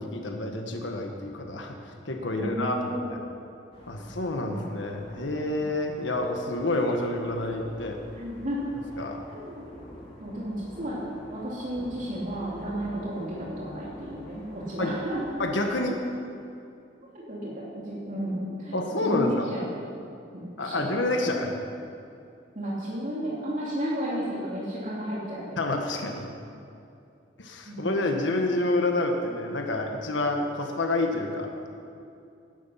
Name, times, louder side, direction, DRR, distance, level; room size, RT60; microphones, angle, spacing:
voice 1, 0.0-2.9 3.9-8.0 9.0-9.2 14.8-14.9 15.4-16.0 18.7-19.5 20.6-21.5 25.6-26.3 27.4-31.5, left 2 dB, 80° left, 2 dB, 1.5 m, -28 dB
voice 2, 2.3-3.2 4.4-4.7 5.5-5.6 8.1-8.6 9.3-9.6 10.2-11.0 11.3-15.2 17.1-19.7 20.3-20.9 22.5-25.6 27.7-28.3, equal, 45° right, -6 dB, 3.0 m, -33 dB
sound 1, 3.7-15.8, equal, 30° left, 3.4 m, -48 dB
17.0 x 11.5 x 5.8 m, 2.6 s
head